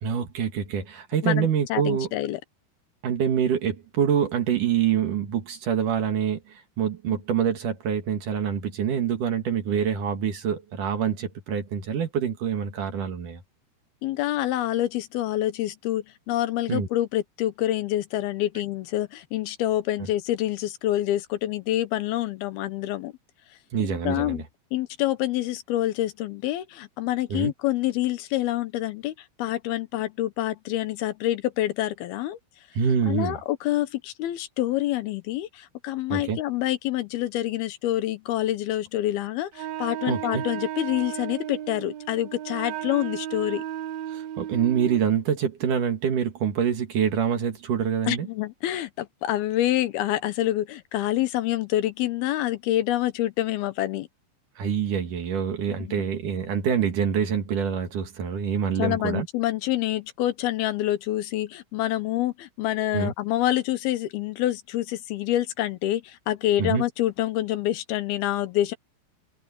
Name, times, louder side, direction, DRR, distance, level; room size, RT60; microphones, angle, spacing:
voice 1, 0.0-2.1 3.0-13.4 16.7-16.9 23.7-24.4 27.3-27.5 32.7-33.4 36.1-36.4 40.1-40.4 44.1-48.3 54.6-59.3 62.9-63.1 66.6-66.8, right 8 dB, 55° right, 3.2 m, -26 dB
voice 2, 1.2-2.4 7.1-7.2 14.0-23.1 23.8-24.4 24.7-29.1 29.4-32.4 33.1-43.6 48.1-54.1 55.7-56.0 58.8-68.7, left 14 dB, 75° left, 2.7 m, -27 dB
Wind instrument woodwind instrument, 39.5-45.1, right 11 dB, 75° right, 1.6 m, -34 dB
omnidirectional pair, 4.7 m